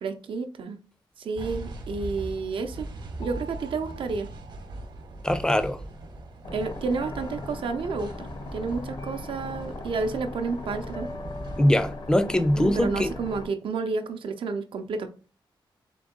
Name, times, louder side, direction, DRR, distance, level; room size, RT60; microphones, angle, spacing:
voice 1, 0.0-0.8 1.2-2.9 3.2-4.3 6.5-8.3 8.5-11.1 12.6-15.1, right 4 dB, 90° right, 0.5 m, -30 dB
sound 1, 1.4-11.9, right 2 dB, 60° right, 0.8 m, -40 dB
sound 2, 3.2-5.6 7.0-8.0 9.0-10.3 10.9-13.3, left 1 dB, 80° left, 1.4 m, -47 dB
voice 2, 5.2-5.8 11.6-13.1, left 1 dB, 10° left, 0.4 m, -22 dB
sound 3, 6.4-13.5, left 2 dB, 60° left, 0.6 m, -39 dB
3.7 x 3.5 x 3.7 m
wide cardioid pair, 170°, 9 cm